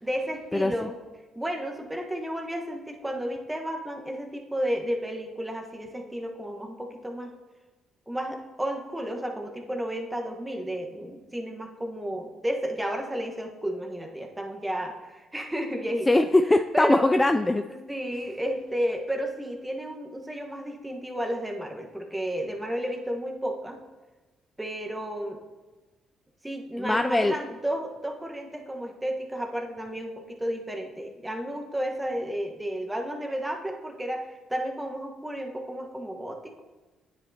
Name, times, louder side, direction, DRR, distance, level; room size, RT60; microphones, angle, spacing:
voice 1, 0.0-1.0 1.3-7.3 8.1-16.2 16.7-17.1 17.7-23.8 24.6-25.4 26.4-36.6, equal, 10° right, 3 dB, 1.2 m, -32 dB
voice 2, 16.1-17.6 26.8-27.3, left 2 dB, 20° left, 7 dB, 0.3 m, -21 dB
9.2 x 8.1 x 2.8 m, 1.2 s
hypercardioid pair, 55°, 0 cm